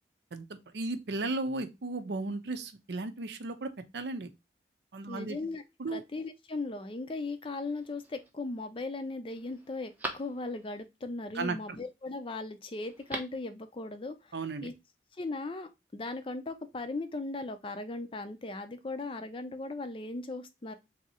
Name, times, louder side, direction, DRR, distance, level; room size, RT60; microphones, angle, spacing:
voice 1, 0.3-4.3 4.9-5.4 5.8-6.0 11.3-11.8 14.3-14.7, right 3 dB, 70° right, 0.6 m, -35 dB
voice 2, 5.1-5.6 5.9-14.2 14.6-14.7 15.2-20.7, left 3 dB, 30° left, 0.4 m, -38 dB
Telephone, 7.7-8.3 8.8-8.9 9.3-10.8 12.8-13.5 13.8-13.9, right 1 dB, 10° right, 0.7 m, -42 dB
3.6 x 2.7 x 4.1 m
head